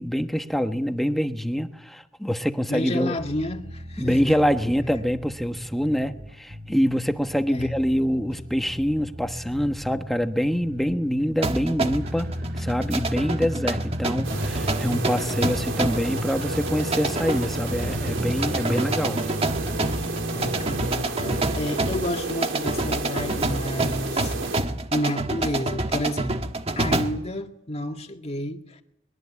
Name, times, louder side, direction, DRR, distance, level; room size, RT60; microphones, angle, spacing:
voice 1, 0.0-3.1 4.0-19.2, equal, ahead, 1.3 m, -25 dB
voice 2, 2.7-4.4 7.5-7.7 20.3-26.4 26.8-28.8, left 1 dB, 35° left, 2.0 m, -30 dB
sound 1, 3.2-20.8, equal, 55° right, 3.5 m, -35 dB
sound 2, 11.4-27.3, right 2 dB, 30° right, 1.4 m, -28 dB
sound 3, 14.2-24.6, right 2 dB, 85° right, 3.7 m, -32 dB
23.0 x 22.0 x 8.5 m
head